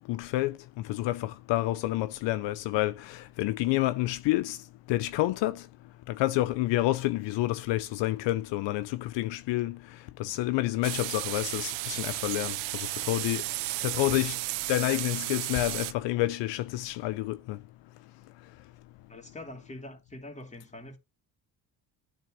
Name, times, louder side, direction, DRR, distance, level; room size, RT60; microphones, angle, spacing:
voice 1, 0.1-0.6 0.9-4.6 4.9-5.6 6.1-9.8 10.2-13.4 13.8-14.4 14.7-17.6, left 16 dB, 75° left, 0.6 m, -29 dB
sound 1, 10.8-15.9, right 20 dB, 90° right, 0.6 m, -33 dB
voice 2, 19.1-21.0, left 1 dB, 15° left, 2.6 m, -44 dB
9.2 x 3.7 x 6.3 m
cardioid pair, 85°, 44 cm